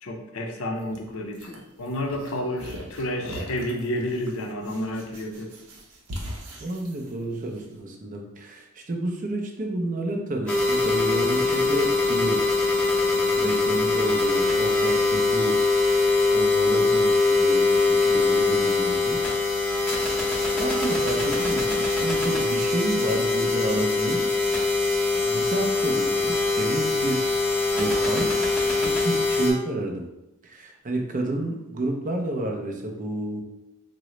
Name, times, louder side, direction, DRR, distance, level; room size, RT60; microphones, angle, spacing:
voice 1, 0.0-5.5 18.1-18.9, left 1 dB, 60° left, 3 dB, 0.5 m, -31 dB
sound 1, 0.8-7.6, equal, 75° right, 0.6 m, -40 dB
voice 2, 6.6-12.7 13.1-19.2 20.3-24.3 25.3-27.4 27.7-28.3 28.6-30.1 30.4-33.4, right 1 dB, 35° right, 2 dB, 0.4 m, -30 dB
sound 2, 10.5-29.5, left 3 dB, 5° left, 0.6 m, -22 dB
3.6 x 2.0 x 3.0 m, 0.93 s
head